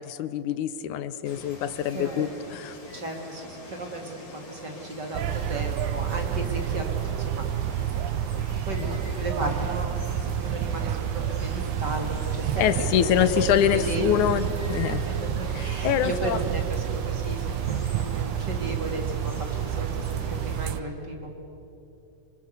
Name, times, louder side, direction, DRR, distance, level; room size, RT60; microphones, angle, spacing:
voice 1, 0.0-2.8 8.8-9.0 12.6-15.0 15.6-16.4, left 10 dB, 80° left, 13 dB, 2.3 m, -25 dB
Water, 1.2-20.7, left 2 dB, 35° left, 4.1 m, -45 dB
voice 2, 1.9-2.3 2.9-12.7 13.2-13.3 13.7-14.0 14.9-17.6 17.9-21.3, right 2 dB, 35° right, 2 dB, 3.0 m, -35 dB
sound 1, 5.1-20.8, right 9 dB, 85° right, 2.2 m, -29 dB
26.0 x 23.5 x 8.2 m, 3.0 s
omnidirectional pair, 3.4 m